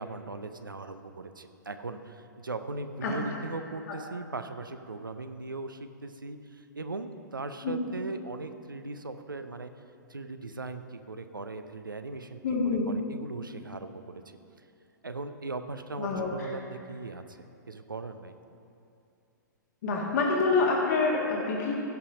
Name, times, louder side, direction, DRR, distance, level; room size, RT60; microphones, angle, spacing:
voice 1, 0.0-9.7 10.1-14.4 15.0-18.4, right 3 dB, 85° right, 9 dB, 0.6 m, -39 dB
voice 2, 12.4-12.9 16.0-16.5 19.8-21.7, left 4 dB, 55° left, -3 dB, 1.7 m, -27 dB
16.0 x 5.7 x 5.1 m, 2.6 s
figure-of-eight pair, 110°, 11 cm